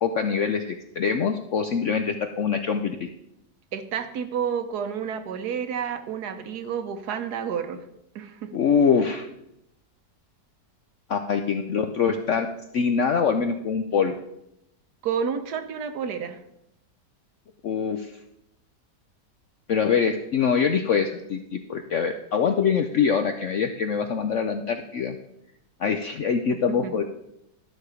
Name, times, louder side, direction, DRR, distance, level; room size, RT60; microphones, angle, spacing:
voice 1, 0.0-3.1 8.5-9.3 11.1-12.5 12.7-14.2 17.6-18.1 19.7-25.2 25.8-27.0, left 6 dB, 70° left, 7 dB, 0.7 m, -24 dB
voice 2, 3.7-7.8 8.1-8.5 15.0-16.4 26.7-26.9, right 7 dB, 65° right, 9 dB, 1.3 m, -30 dB
12.5 x 6.5 x 4.9 m, 0.82 s
omnidirectional pair, 1.9 m